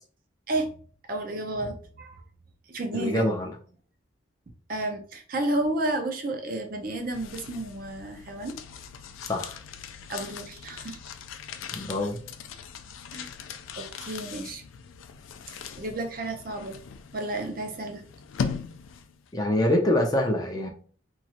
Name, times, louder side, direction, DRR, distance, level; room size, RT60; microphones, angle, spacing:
voice 1, 1.1-2.2 2.7-3.3 4.7-8.6 10.1-11.0 13.1-13.3 13.8-14.6 15.8-16.8 17.1-18.0, right 1 dB, 45° right, 5 dB, 0.5 m, -31 dB
voice 2, 2.9-3.5 9.3-9.6 11.7-12.2 19.3-20.7, left 1 dB, 20° left, 1 dB, 0.4 m, -25 dB
sound 1, 6.7-19.3, left 6 dB, 85° left, 0.3 m, -40 dB
3.0 x 2.3 x 2.8 m, 0.43 s
head